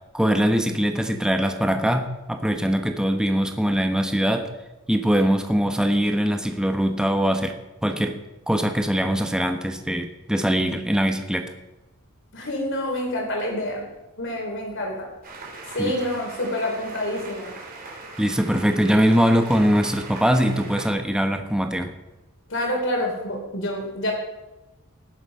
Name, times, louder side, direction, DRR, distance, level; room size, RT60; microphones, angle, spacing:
voice 1, 0.1-4.5 4.9-7.5 7.8-8.2 8.5-11.5 15.8-15.9 18.2-21.9, equal, 5° right, 5 dB, 1.0 m, -22 dB
voice 2, 12.3-13.9 14.2-15.1 15.7-17.5 22.5-24.1, left 1 dB, 60° left, 1 dB, 3.8 m, -27 dB
sound 1, 15.2-20.9, right 3 dB, 45° right, 3.5 m, -40 dB
18.5 x 8.0 x 5.5 m, 1.0 s
head